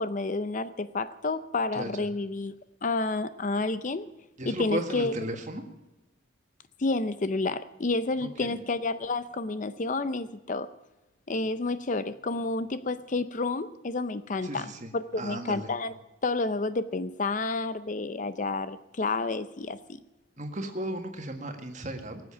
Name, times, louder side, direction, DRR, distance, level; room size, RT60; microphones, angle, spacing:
voice 1, 0.0-2.5 2.8-4.1 4.4-5.1 6.8-10.7 11.3-15.9 16.2-20.0, left 3 dB, 40° left, 13 dB, 0.5 m, -30 dB
voice 2, 4.4-5.6 8.5-8.6 14.4-15.7 20.4-22.2, right 1 dB, 35° right, 5 dB, 1.7 m, -35 dB
18.0 x 7.9 x 9.9 m, 0.98 s
head